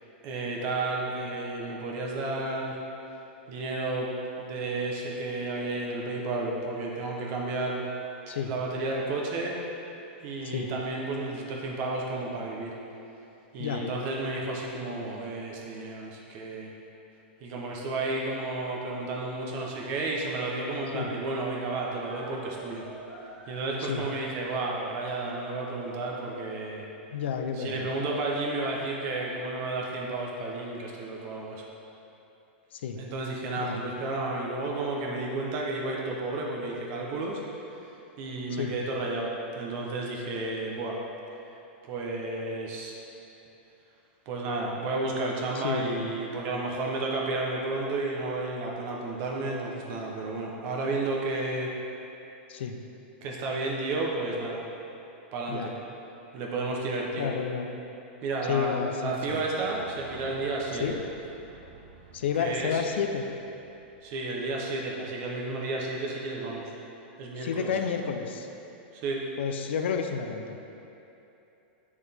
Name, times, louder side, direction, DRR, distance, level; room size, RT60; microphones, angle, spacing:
voice 1, 0.2-2.8 3.5-4.1 4.4-7.8 8.3-9.5 10.2-12.7 13.5-16.7 17.4-22.8 23.5-26.9 27.6-31.7 33.0-37.4 38.2-39.3 39.6-41.0 41.8-42.9 44.3-51.7 53.2-54.6 55.3-55.7 56.3-57.3 58.2-61.0 62.4-62.8 64.0-66.7 67.2-67.7 68.9-69.2, right 2 dB, 40° right, -2 dB, 0.9 m, -32 dB
Speech, 19.6-21.1 21.8-25.8, right 1 dB, 5° left, 1.6 m, -49 dB
voice 2, 27.1-27.9 32.7-33.0 33.6-33.8 38.5-38.7 45.5-46.1 52.5-52.8 55.5-55.7 57.2-57.8 58.5-59.4 60.8-61.0 62.1-63.2 67.4-68.5 69.4-70.6, left 7 dB, 80° left, 5 dB, 0.6 m, -30 dB
Fire / Explosion, 59.1-65.0, right 5 dB, 90° right, 0.8 m, -51 dB
7.7 x 6.3 x 3.6 m, 2.9 s
supercardioid pair, 155°, 6 cm